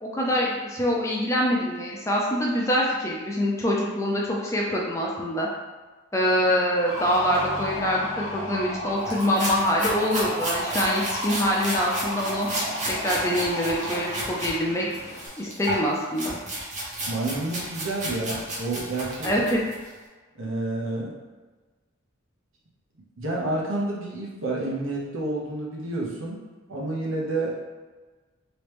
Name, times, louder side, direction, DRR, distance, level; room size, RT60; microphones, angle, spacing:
voice 1, 0.0-5.5 6.1-12.5 12.9-14.9 15.4-16.4 19.2-19.6, equal, 15° left, -3 dB, 0.4 m, -25 dB
sound 1, 6.8-15.3, equal, 70° left, 0.8 m, -33 dB
sound 2, 9.0-14.5 14.9-19.9, right 1 dB, 35° right, 0.9 m, -33 dB
voice 2, 17.1-19.3 20.4-21.2 23.2-26.4 26.7-27.6, right 2 dB, 75° right, -4 dB, 0.9 m, -29 dB
3.1 x 3.0 x 3.3 m, 1.3 s
head